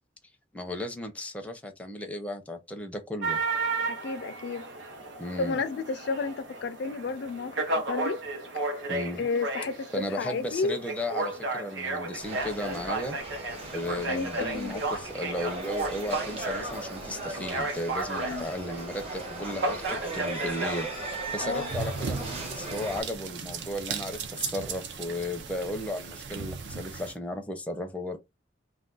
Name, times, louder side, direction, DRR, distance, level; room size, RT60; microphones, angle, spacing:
voice 1, 0.5-3.4 5.2-5.6 8.9-9.2 9.9-13.2 13.7-28.2, left 1 dB, 10° left, 0.5 m, -35 dB
sound 1, 3.2-22.3, right 2 dB, 85° right, 0.8 m, -34 dB
voice 2, 3.9-4.6 5.4-8.2 8.5-8.7 9.2-10.8 14.1-14.8 18.2-18.5 21.4-21.7, left 4 dB, 60° left, 0.3 m, -32 dB
sound 2, 12.2-23.0, right 2 dB, 35° right, 0.9 m, -38 dB
sound 3, 21.7-27.1, right 5 dB, 70° right, 0.5 m, -37 dB
2.4 x 2.2 x 3.7 m
head